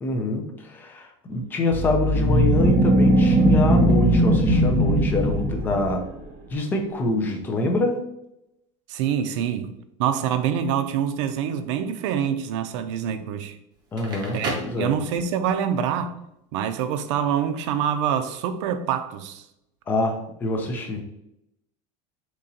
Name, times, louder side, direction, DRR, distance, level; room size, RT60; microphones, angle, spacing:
voice 1, 0.0-6.1 6.5-8.0 13.9-15.0 19.9-21.0, left 2 dB, 15° left, 0.4 m, -25 dB
sound 1, 1.7-6.1, right 1 dB, 50° right, 0.9 m, -19 dB
voice 2, 8.9-9.7 10.0-13.6 14.3-16.2 16.5-19.5, right 8 dB, 80° right, 0.4 m, -25 dB
Crackle, 13.8-15.5, right 1 dB, 30° right, 0.6 m, -33 dB
3.8 x 2.9 x 2.7 m
cardioid pair, 175°, 15 cm